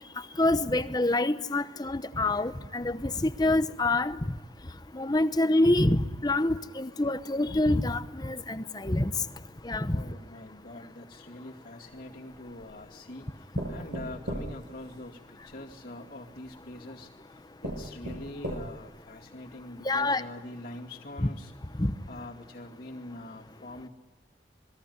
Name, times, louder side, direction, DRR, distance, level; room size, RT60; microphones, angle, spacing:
voice 1, 0.4-4.2 4.9-9.1 9.6-10.0 19.8-20.2 21.2-21.3 21.8-21.9, left 2 dB, 20° left, 0.9 m, -26 dB
voice 2, 9.9-23.9, left 1 dB, 60° left, 2.5 m, -44 dB
sound 1, 11.9-12.8 13.6-15.5 16.5-16.6 17.2-17.3 17.6-19.0 19.5-19.6 19.9-20.0, right 1 dB, 70° right, 8.0 m, -38 dB
27.5 x 21.5 x 9.5 m
head